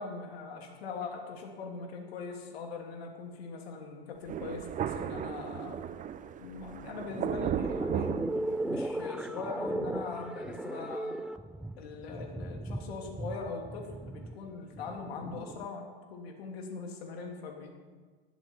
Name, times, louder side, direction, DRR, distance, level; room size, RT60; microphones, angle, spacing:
voice 1, 0.0-5.8 6.4-8.4 8.7-11.2 11.8-17.7, left 4 dB, 75° left, 1 dB, 2.9 m, -41 dB
Thunder, 4.3-9.1, right 9 dB, 25° right, 0.7 m, -36 dB
sound 1, 6.9-15.7, right 1 dB, 5° right, 0.3 m, -37 dB
19.0 x 13.0 x 4.6 m, 1.5 s
hypercardioid pair, 105°, 31 cm